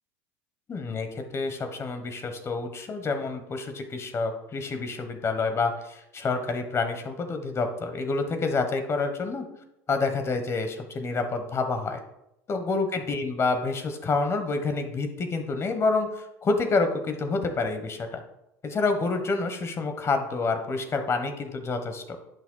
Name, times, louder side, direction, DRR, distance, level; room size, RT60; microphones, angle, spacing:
voice 1, 0.7-9.4 9.9-12.0 12.5-18.2 18.6-22.2, left 3 dB, 30° left, 7 dB, 1.2 m, -28 dB
10.5 x 6.0 x 2.3 m, 0.83 s
hypercardioid pair, 80°, 8 cm